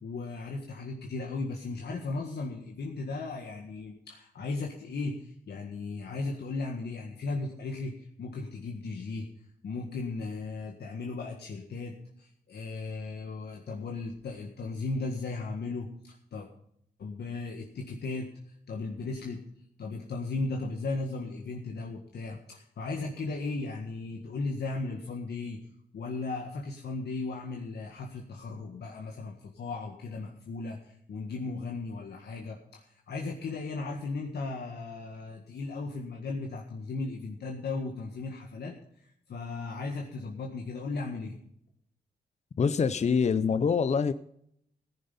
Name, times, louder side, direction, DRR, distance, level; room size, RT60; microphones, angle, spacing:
voice 1, 0.0-9.3 9.6-16.5 17.0-18.3 18.7-19.4 19.8-25.6 25.9-41.4, left 3 dB, 75° left, 0 dB, 1.7 m, -36 dB
voice 2, 42.6-44.1, left 6 dB, 40° left, 13 dB, 0.6 m, -25 dB
14.5 x 10.5 x 5.5 m, 0.72 s
cardioid pair, 95°, 17 cm